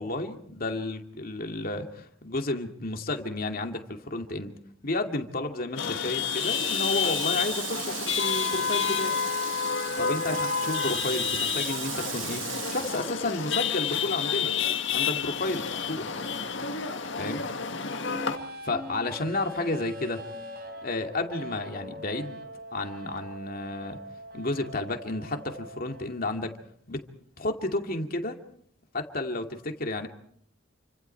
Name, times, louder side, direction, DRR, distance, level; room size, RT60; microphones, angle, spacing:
voice 1, 0.0-4.5 4.8-9.1 10.0-14.5 14.9-16.0 17.2-17.4 18.6-20.2 20.8-22.4 22.7-24.0 24.3-26.5 26.9-27.1 27.4-28.4 28.9-30.1, left 2 dB, 50° left, 4 dB, 2.4 m, -32 dB
Chatter / Vehicle horn car horn honking / Traffic noise roadway noise, 5.8-18.4, left 7 dB, 65° left, 1.9 m, -29 dB
Water tap faucet, 6.1-13.9 14.3-15.6, right 10 dB, 75° right, 2.9 m, -37 dB
sound 1, 18.1-26.1, equal, 55° right, 3.8 m, -42 dB
29.0 x 25.5 x 4.6 m, 0.66 s
head